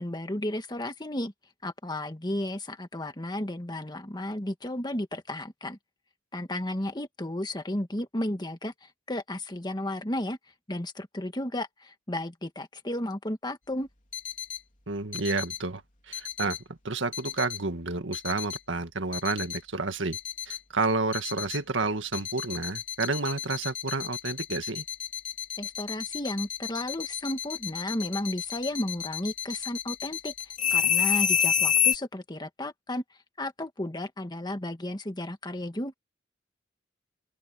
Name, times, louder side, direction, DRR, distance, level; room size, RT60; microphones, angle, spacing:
voice 1, 0.0-1.3 1.6-5.8 6.3-10.4 10.7-13.9 25.6-30.3 30.7-33.0 33.4-35.9, left 1 dB, 25° left, 1.7 m, -33 dB
sound 1, 14.1-14.6 15.1-15.6 16.1-16.6 17.1-17.6 18.1-18.6 19.1-19.6 20.1-20.6 21.1-21.6 22.1-32.0, left 9 dB, 45° left, 3.4 m, -29 dB
voice 2, 14.9-16.6 16.8-20.2 20.5-24.8, right 3 dB, 85° right, 1.8 m, -30 dB
open air
head